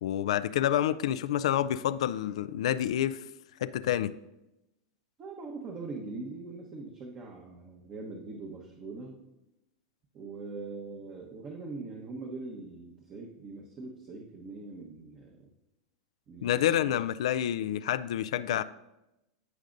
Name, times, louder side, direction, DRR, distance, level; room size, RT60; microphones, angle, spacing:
voice 1, 0.0-3.2 3.6-4.1 16.4-18.6, left 11 dB, 75° left, 13 dB, 0.3 m, -28 dB
voice 2, 5.2-9.1 10.1-15.5 16.3-17.0 17.4-17.5, right 3 dB, 35° right, -1 dB, 1.2 m, -42 dB
14.5 x 5.1 x 2.6 m, 0.91 s
hypercardioid pair, 120°, 3 cm